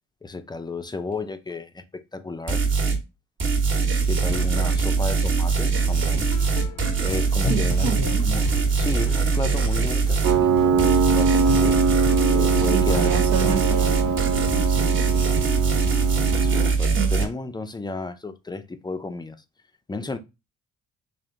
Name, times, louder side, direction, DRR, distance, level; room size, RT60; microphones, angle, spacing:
voice 1, 0.2-2.6 4.0-6.3 6.6-6.7 7.0-8.0 8.2-8.5 8.7-11.8 12.3-13.9 16.4-19.4 19.9-20.2, left 3 dB, 15° left, 0.5 m, -33 dB
sound 1, 2.5-3.0 3.4-10.4 10.8-17.3, right 4 dB, 40° right, 1.2 m, -22 dB
sound 2, 5.7-16.7, left 5 dB, 85° left, 0.7 m, -35 dB
voice 2, 7.4-8.2 12.7-15.0 16.9-17.1, right 7 dB, 70° right, 1.0 m, -30 dB
Piano, 10.2-16.7, right 5 dB, 85° right, 0.7 m, -23 dB
3.6 x 2.5 x 3.8 m
cardioid pair, 90°, 30 cm